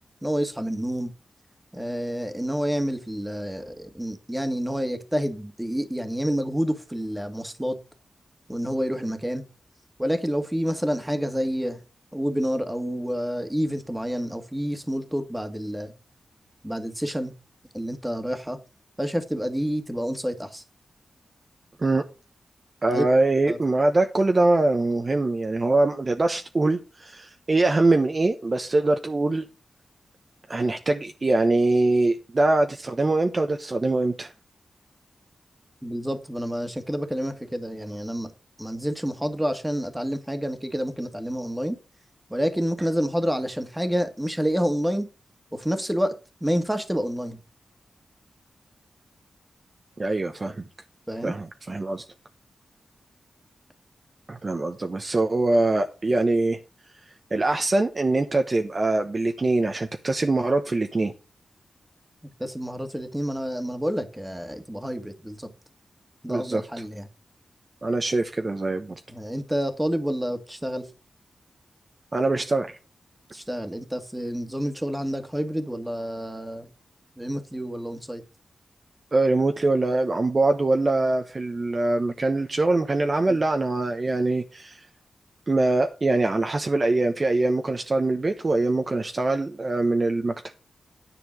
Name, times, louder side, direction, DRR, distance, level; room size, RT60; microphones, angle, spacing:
voice 1, 0.2-1.1 1.7-7.8 8.5-9.4 10.0-11.8 12.1-15.9 16.6-17.3 17.7-18.6 19.0-20.6 22.9-23.1 23.5-23.6 35.8-38.3 38.6-41.8 42.3-45.1 45.5-47.4 51.1-51.3 62.4-65.5 66.2-67.1 69.1-70.9 73.3-76.7 77.2-78.2 83.3-83.4, equal, 10° right, 1.8 m, -28 dB
voice 2, 22.8-29.4 30.5-34.3 50.0-50.6 51.2-52.0 54.3-56.6 57.3-61.1 66.3-66.6 67.8-69.0 72.1-72.8 79.1-84.8 85.5-90.3, right 2 dB, 40° right, 0.9 m, -23 dB
10.0 x 4.4 x 7.6 m
cardioid pair, 60°, 0 cm